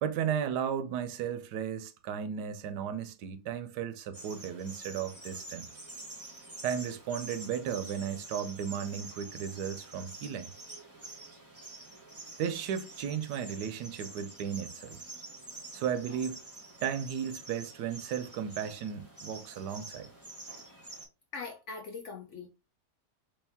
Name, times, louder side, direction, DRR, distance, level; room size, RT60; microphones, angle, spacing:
voice 1, 0.0-5.7 6.6-10.5 12.4-15.0 15.7-16.4 16.8-20.1, right 8 dB, 80° right, 1.2 m, -35 dB
sound 1, 4.1-21.1, right 2 dB, 10° right, 0.7 m, -47 dB
voice 2, 21.3-22.5, left 4 dB, 65° left, 0.7 m, -41 dB
3.3 x 3.1 x 3.4 m
omnidirectional pair, 1.8 m